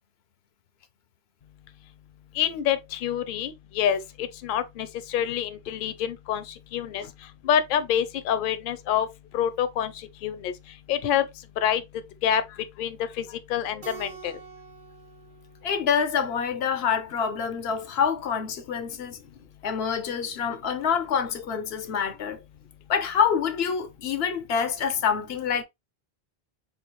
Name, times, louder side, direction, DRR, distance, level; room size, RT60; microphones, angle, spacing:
voice 1, 2.4-6.4 6.7-7.0 7.4-9.1 9.3-9.9 10.2-10.5 10.9-11.2 11.6-11.8 12.2-12.4 12.8-13.2 13.5-14.3, left 9 dB, 60° left, 0.7 m, -26 dB
Keyboard (musical), 13.8-16.5, right 7 dB, 55° right, 1.4 m, -46 dB
voice 2, 15.6-19.2 19.6-22.4 22.9-25.6, left 7 dB, 85° left, 0.9 m, -26 dB
4.9 x 2.4 x 3.0 m
omnidirectional pair, 1.0 m